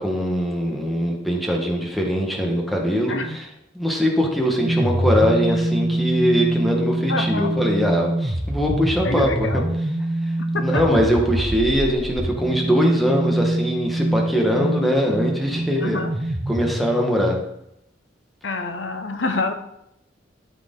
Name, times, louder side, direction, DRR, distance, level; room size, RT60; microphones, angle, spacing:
voice 1, 0.0-3.5 3.7-9.6 10.5-16.0 16.5-17.4, equal, ahead, 0 dB, 1.5 m, -22 dB
sound 1, 4.6-17.4, right 1 dB, 20° right, 1.0 m, -25 dB
voice 2, 7.1-7.5 9.0-9.7 10.5-10.8 14.6-14.7 15.8-16.1 18.4-19.5, left 3 dB, 80° left, 6 dB, 1.1 m, -26 dB
13.0 x 4.9 x 3.9 m, 0.80 s
head